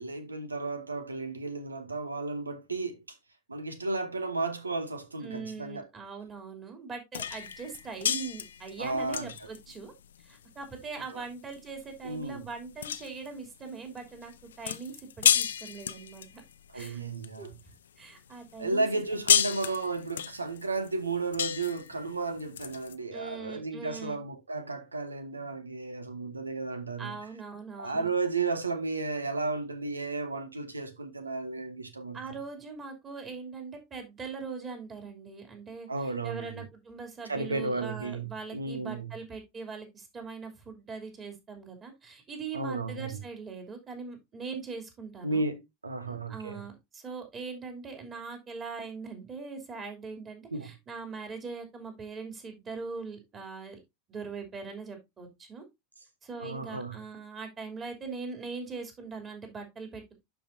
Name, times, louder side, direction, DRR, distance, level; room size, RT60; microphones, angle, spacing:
voice 1, 0.0-3.0 3.5-5.9 8.8-9.5 11.1-11.2 12.0-12.5 16.7-17.6 18.6-27.2 27.8-32.3 35.9-36.6 37.3-39.1 42.5-43.2 45.2-46.6 50.5-50.7 56.4-57.0, right 3 dB, 80° right, 1.1 m, -33 dB
voice 2, 5.2-9.9 10.2-16.4 16.7-17.0 17.4-17.5 18.0-18.8 19.4-19.5 23.1-24.2 27.0-28.1 32.1-35.9 36.2-45.5 46.1-53.8 54.1-55.6 56.2-60.2, right 4 dB, 25° right, 3.0 m, -41 dB
sound 1, 7.1-17.7 18.2-22.9, left 9 dB, 70° left, 0.5 m, -32 dB
11.5 x 4.9 x 2.7 m
figure-of-eight pair, 85°, 0 cm